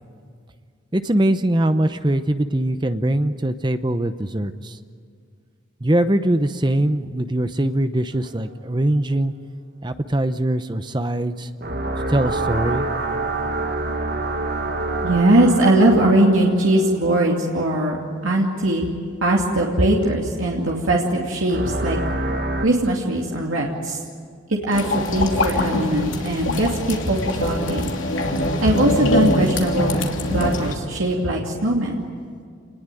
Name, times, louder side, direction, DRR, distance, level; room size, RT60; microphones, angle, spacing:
voice 1, 0.9-4.8 5.8-9.3 9.8-11.5 12.1-12.8, right 1 dB, 20° right, 10 dB, 0.8 m, -22 dB
sound 1, 11.6-17.4 21.5-22.7, right 2 dB, 50° right, 1.7 m, -26 dB
voice 2, 15.0-18.0 18.2-18.8 19.2-22.0 22.6-24.0 24.5-27.9 28.6-29.9 30.3-32.0, right 1 dB, 90° right, -2 dB, 2.6 m, -20 dB
sound 2, 24.7-30.7, left 1 dB, 80° left, 2.9 m, -23 dB
27.5 x 20.0 x 9.2 m, 2.1 s
head